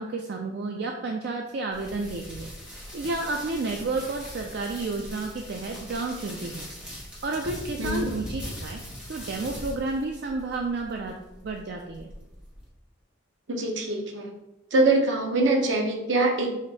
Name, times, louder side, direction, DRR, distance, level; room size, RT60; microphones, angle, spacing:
voice 1, 0.0-6.7 7.2-8.8 9.1-11.1 11.4-12.1, right 3 dB, 55° right, 2 dB, 0.4 m, -31 dB
sound 1, 1.7-12.7, equal, 5° right, 1.0 m, -41 dB
voice 2, 13.5-14.3 14.7-16.5, right 2 dB, 70° right, 2 dB, 0.8 m, -23 dB
5.0 x 2.6 x 4.0 m, 0.95 s
head